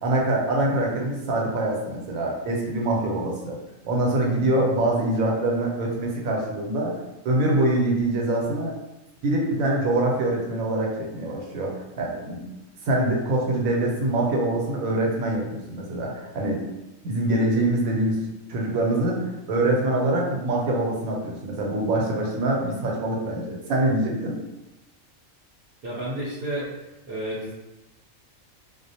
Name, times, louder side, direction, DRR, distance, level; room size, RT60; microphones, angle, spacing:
voice 1, 0.0-3.6 3.8-6.9 7.2-8.7 9.2-12.4 12.8-16.6 17.0-18.2 18.5-24.4, right 1 dB, 85° right, -1 dB, 1.1 m, -24 dB
voice 2, 25.8-26.7 27.1-27.5, right 1 dB, 60° right, -6 dB, 0.7 m, -31 dB
2.4 x 2.0 x 2.7 m, 0.99 s
omnidirectional pair, 1.4 m